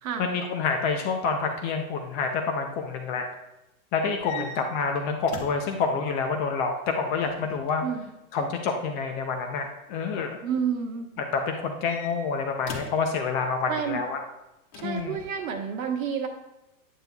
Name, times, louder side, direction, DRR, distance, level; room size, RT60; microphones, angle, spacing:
voice 1, 0.2-3.2 3.9-7.9 8.3-10.4 11.5-14.2 14.8-15.2, left 5 dB, 25° left, 4 dB, 0.4 m, -28 dB
sound 1, 4.1-5.8 7.0-7.8 9.3-9.7 11.5-13.1 14.7-15.4, left 4 dB, 50° left, 1.5 m, -42 dB
voice 2, 10.4-11.1 13.7-14.0 14.8-16.3, right 7 dB, 70° right, 4 dB, 1.3 m, -30 dB
9.0 x 7.9 x 2.2 m, 0.94 s
hypercardioid pair, 135°, 42 cm